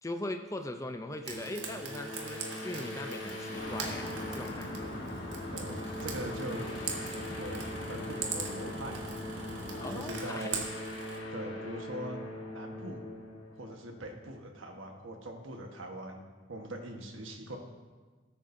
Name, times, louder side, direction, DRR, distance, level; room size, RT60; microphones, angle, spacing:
voice 1, 0.0-5.0 9.8-10.5, left 1 dB, 15° left, 6 dB, 0.5 m, -40 dB
Frying (food), 1.2-11.2, right 5 dB, 65° right, 1.6 m, -42 dB
sound 1, 1.3-14.6, left 1 dB, 85° left, 1.9 m, -42 dB
sound 2, 3.5-9.9, left 1 dB, 40° left, 3.7 m, -41 dB
voice 2, 5.5-6.8 7.3-10.6 11.3-13.1 13.6-17.6, right 1 dB, 85° right, 3 dB, 1.3 m, -42 dB
19.5 x 8.7 x 2.7 m, 1.4 s
head